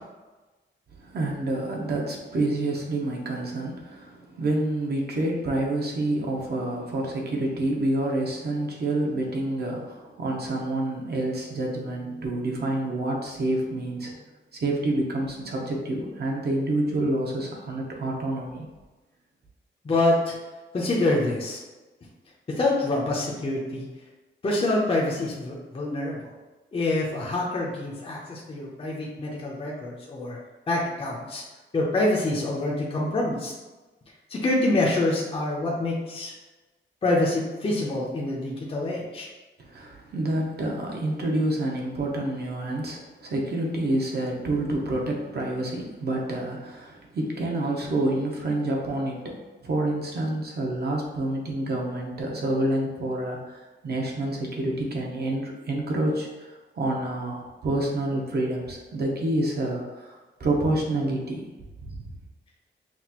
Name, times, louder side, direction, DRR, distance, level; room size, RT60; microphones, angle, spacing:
voice 1, 1.0-14.2 14.5-18.7 39.6-49.4 49.6-61.4 61.8-62.1, right 1 dB, 55° right, -1 dB, 0.8 m, -28 dB
voice 2, 19.8-20.3 20.7-21.6 22.5-23.9 24.4-26.2 26.7-30.4 30.7-31.4 31.7-33.5 34.3-36.3 37.0-39.3, left 2 dB, 30° left, -3 dB, 0.6 m, -26 dB
5.8 x 2.4 x 2.9 m, 1.2 s
wide cardioid pair, 175°, 20 cm